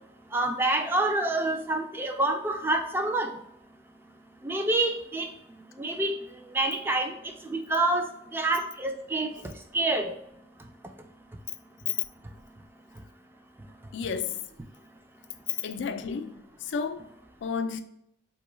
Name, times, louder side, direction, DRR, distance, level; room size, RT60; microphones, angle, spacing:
voice 1, 0.3-3.3 4.4-5.3 5.8-6.1 6.5-7.1 7.4-8.1 8.3-9.3 9.7-10.1, right 2 dB, 10° right, 0.3 m, -27 dB
voice 2, 13.9-14.4 15.6-16.3 16.6-17.1 17.4-17.8, left 6 dB, 80° left, 0.3 m, -31 dB
4.5 x 2.3 x 3.0 m
head